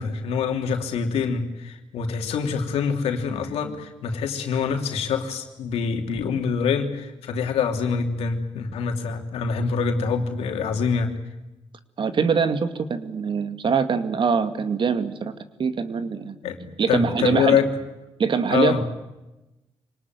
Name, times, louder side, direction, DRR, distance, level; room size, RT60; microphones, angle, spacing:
voice 1, 0.0-11.1 16.4-17.7 18.5-18.8, left 6 dB, 85° left, 4 dB, 3.0 m, -25 dB
voice 2, 12.0-15.3 15.6-16.4 16.8-17.6 18.2-18.9, right 5 dB, 55° right, 10 dB, 2.1 m, -23 dB
25.5 x 19.0 x 9.4 m, 1.0 s
cardioid pair, 65°, 10 cm